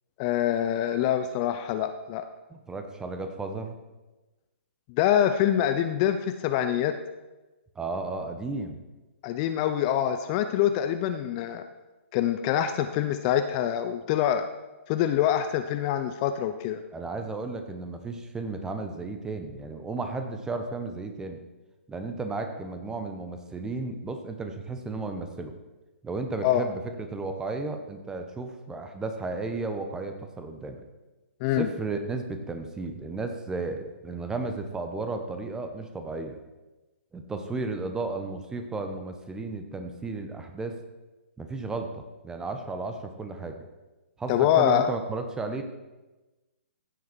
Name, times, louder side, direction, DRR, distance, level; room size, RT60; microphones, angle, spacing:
voice 1, 0.2-2.2 5.0-6.9 9.2-11.6 12.1-14.5 14.9-16.8 26.4-26.7 31.4-31.7 44.3-44.9, left 10 dB, 30° left, 9 dB, 0.6 m, -25 dB
voice 2, 2.5-3.8 7.7-8.8 16.9-21.4 21.9-25.5 26.0-26.8 27.1-30.8 31.6-36.4 37.1-40.8 41.4-43.7 44.2-45.6, right 3 dB, 10° right, 6 dB, 1.0 m, -34 dB
15.5 x 7.3 x 4.5 m, 1.1 s
figure-of-eight pair, 125°, 7 cm